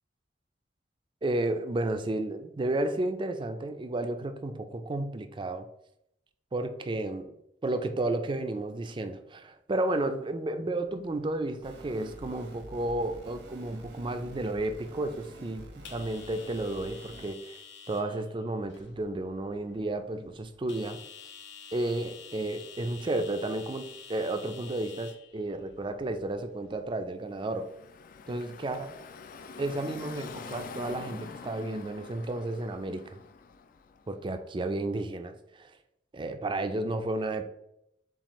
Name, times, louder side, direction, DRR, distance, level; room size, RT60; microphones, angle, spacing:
voice 1, 1.2-5.7 6.5-7.3 7.6-17.6 17.9-21.0 21.7-27.7 28.3-28.9 29.6-33.2 34.1-35.7 36.1-37.4, right 2 dB, 30° right, 8 dB, 0.4 m, -32 dB
sound 1, 10.8-26.9, left 6 dB, 75° left, 0.8 m, -51 dB
sound 2, 11.6-17.3, right 1 dB, 70° right, 0.9 m, -48 dB
Car passing by / Traffic noise roadway noise, 27.3-34.2, left 5 dB, 50° left, 0.3 m, -46 dB
7.2 x 2.4 x 3.0 m, 0.79 s
head